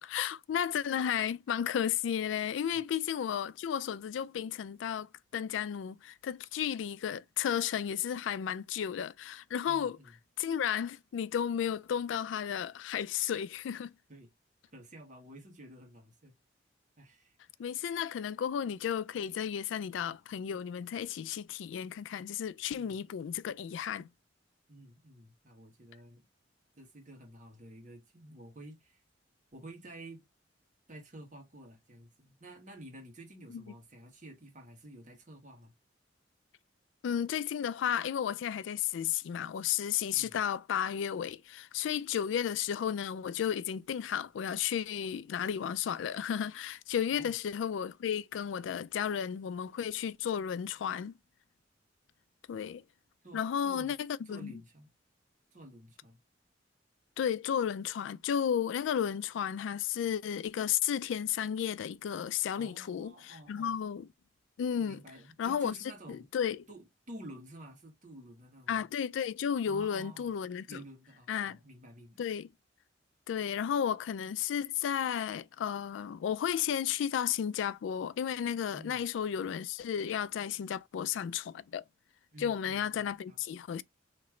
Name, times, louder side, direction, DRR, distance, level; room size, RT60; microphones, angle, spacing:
voice 1, 0.0-10.0 10.4-13.9 17.6-24.1 33.5-33.6 37.0-51.1 52.5-52.8 53.3-54.5 57.2-64.1 64.6-65.0 65.4-65.7 66.1-66.6 68.7-70.8 71.3-71.6 72.2-72.5 73.3-81.8 82.4-83.8, left 8 dB, 80° left, 0.3 m, -33 dB
voice 2, 9.6-10.1 14.1-14.3 14.7-16.3 17.0-17.3 22.8-23.0 24.7-26.3 26.8-29.0 29.5-30.2 30.9-35.7 40.1-40.4 47.1-47.3 53.2-54.0 54.2-54.9 55.5-56.2 62.5-63.8 64.8-66.3 66.7-68.8 69.7-70.3 70.7-72.2 78.7-79.0 82.3-83.4, right 1 dB, 45° right, 1.5 m, -51 dB
3.1 x 2.9 x 3.6 m
head